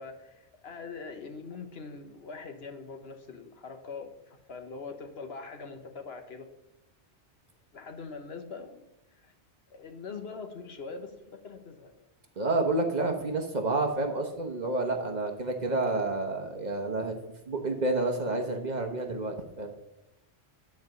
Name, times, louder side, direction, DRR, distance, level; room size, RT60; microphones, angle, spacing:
voice 1, 0.0-6.5 7.7-9.3 9.7-12.1, left 4 dB, 65° left, 6 dB, 1.2 m, -43 dB
voice 2, 12.4-17.2 17.5-19.7, right 2 dB, 40° right, 4 dB, 1.1 m, -29 dB
9.5 x 4.7 x 6.5 m, 0.95 s
omnidirectional pair, 1.2 m